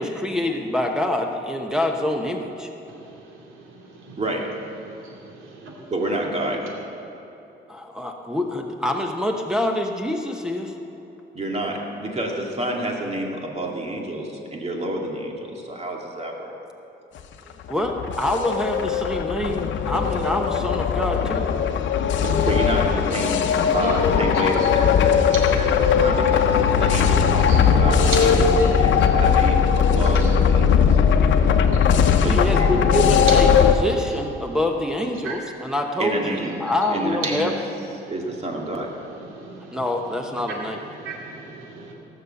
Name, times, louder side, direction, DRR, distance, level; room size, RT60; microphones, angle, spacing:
voice 1, 0.0-2.7 7.7-10.7 17.7-21.5 32.2-37.5 39.7-40.8, left 1 dB, 5° right, 1 dB, 0.9 m, -26 dB
voice 2, 2.9-4.2 4.8-5.9 22.1-22.5 23.6-24.0 24.6-24.7 25.3-25.6 27.4-27.7 28.0-28.2 28.5-28.7 29.0-29.1 29.9-32.2 33.3-33.4 35.2-35.4 37.4-37.6 38.0-38.1 38.4-41.9, right 4 dB, 85° right, -2 dB, 2.6 m, -38 dB
voice 3, 4.2-4.5 5.9-6.7 11.3-16.5 22.4-28.3 28.8-31.0 32.2-32.7 36.0-36.6 36.9-37.4 38.1-38.9, right 1 dB, 30° right, 0 dB, 2.3 m, -29 dB
sound 1, 17.7-33.7, left 7 dB, 70° left, 0.8 m, -19 dB
17.5 x 6.9 x 7.0 m, 3.0 s
cardioid pair, 90°, 20 cm